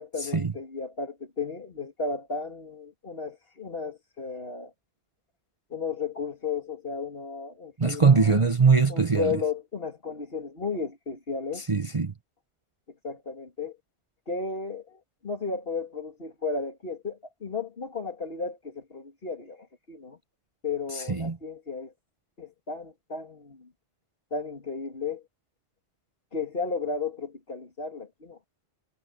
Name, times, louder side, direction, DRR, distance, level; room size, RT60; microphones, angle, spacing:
voice 1, 0.0-4.7 5.7-8.3 8.9-11.7 13.0-13.8 14.3-20.2 20.6-21.9 22.4-23.7 24.3-25.2 26.3-28.4, left 4 dB, 55° left, 2.7 m, -34 dB
voice 2, 7.8-9.4 11.7-12.1 21.1-21.4, right 5 dB, 30° right, 0.9 m, -21 dB
omnidirectional pair, 1.2 m